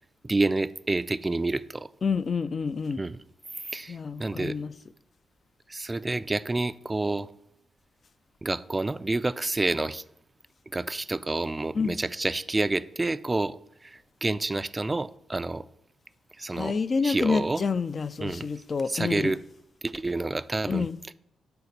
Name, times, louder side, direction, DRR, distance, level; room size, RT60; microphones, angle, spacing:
voice 1, 0.2-1.9 3.0-3.2 3.7-4.6 5.7-7.3 8.4-10.0 10.7-15.6 16.4-16.7 17.0-17.6 18.2-18.5 18.9-19.4 19.8-20.9, right 2 dB, 25° right, 0.4 m, -28 dB
voice 2, 2.0-3.0 3.9-4.7 11.7-11.9 16.5-19.3 20.7-20.9, left 5 dB, 50° left, 0.4 m, -28 dB
7.0 x 4.0 x 6.6 m
supercardioid pair, 55°, 0 cm